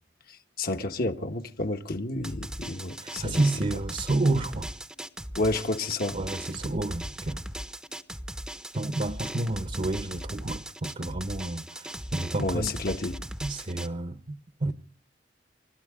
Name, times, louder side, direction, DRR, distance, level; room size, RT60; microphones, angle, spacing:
voice 1, 0.6-3.4 5.4-6.2 12.4-13.2, left 2 dB, 55° left, 1.3 m, -30 dB
Drum, 2.2-13.9, right 1 dB, 5° right, 0.8 m, -38 dB
voice 2, 3.0-4.7 6.1-7.4 8.7-12.8 13.4-14.7, right 2 dB, 45° right, 0.9 m, -30 dB
30.0 x 13.0 x 3.7 m
head